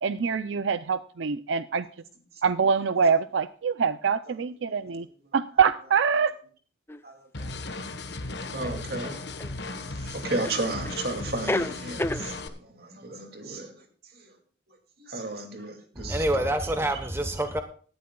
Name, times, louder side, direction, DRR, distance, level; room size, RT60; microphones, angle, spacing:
voice 1, 0.0-1.9 2.4-5.1 5.3-6.3, right 6 dB, 80° right, 0.5 m, -24 dB
sound 1, 6.9-7.0 8.6-9.5 10.4-11.0 11.3-12.3, left 1 dB, 10° left, 0.5 m, -30 dB
voice 2, 7.0-7.8 8.5-9.2 10.1-12.3 12.7-13.7 15.0-16.2, right 2 dB, 55° right, 2.4 m, -33 dB
sound 2, 7.3-12.5, left 2 dB, 65° left, 1.3 m, -36 dB
voice 3, 15.9-17.6, right 1 dB, 15° right, 1.0 m, -27 dB
18.0 x 12.0 x 2.3 m
head